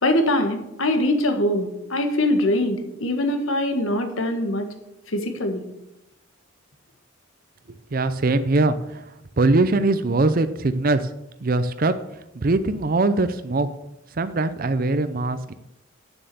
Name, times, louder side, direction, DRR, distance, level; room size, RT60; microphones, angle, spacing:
voice 1, 0.0-4.7 5.1-5.6, left 1 dB, 85° left, 6 dB, 1.5 m, -23 dB
voice 2, 7.9-9.0 9.4-11.1 11.4-11.9 12.3-13.7 14.2-15.5, right 2 dB, 45° right, 11 dB, 0.5 m, -21 dB
9.0 x 7.3 x 6.9 m, 0.90 s
head